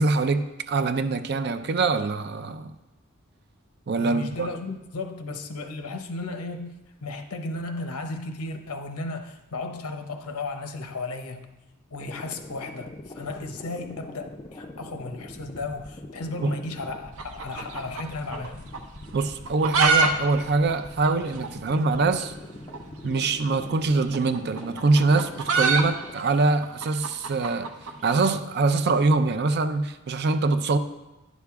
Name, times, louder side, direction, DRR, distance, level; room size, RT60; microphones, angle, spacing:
voice 1, 0.0-2.7 3.9-4.5 16.4-16.5 19.1-22.3 23.0-27.7 28.0-30.8, right 3 dB, 50° right, 0.5 m, -24 dB
voice 2, 4.0-6.8 7.0-11.6 11.9-18.7, left 3 dB, 90° left, 0.8 m, -35 dB
sound 1, 12.0-26.1, left 1 dB, 20° left, 0.4 m, -43 dB
sound 2, 17.1-18.5 18.7-18.8 19.4-20.1 20.4-20.5 20.7-20.8 21.4-21.5 22.7-22.9 24.0-28.2, right 4 dB, 75° right, 0.8 m, -25 dB
10.5 x 6.2 x 3.5 m
head